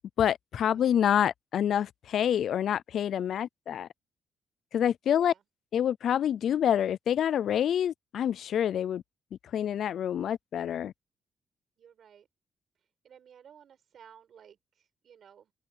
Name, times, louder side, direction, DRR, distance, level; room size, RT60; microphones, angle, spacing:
voice 1, 0.2-3.9 4.7-5.3 5.7-9.0 9.5-10.9, left 9 dB, 60° left, 0.4 m, -27 dB
voice 2, 5.0-5.4 11.8-12.3 13.0-15.5, right 8 dB, 55° right, 5.6 m, -56 dB
open air
cardioid pair, 155°, 0 cm